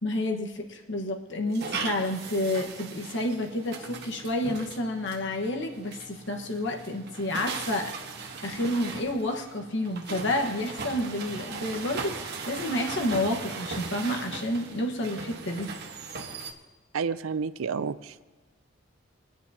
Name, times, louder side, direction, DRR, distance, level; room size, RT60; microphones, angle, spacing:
voice 1, 0.0-8.0 8.4-15.7, left 1 dB, 60° left, 3 dB, 1.4 m, -30 dB
sound 1, 1.5-16.5, right 4 dB, 55° right, 1.2 m, -39 dB
voice 2, 16.9-18.2, right 5 dB, 85° right, 14 dB, 0.5 m, -30 dB
23.0 x 10.0 x 2.8 m, 1.3 s
head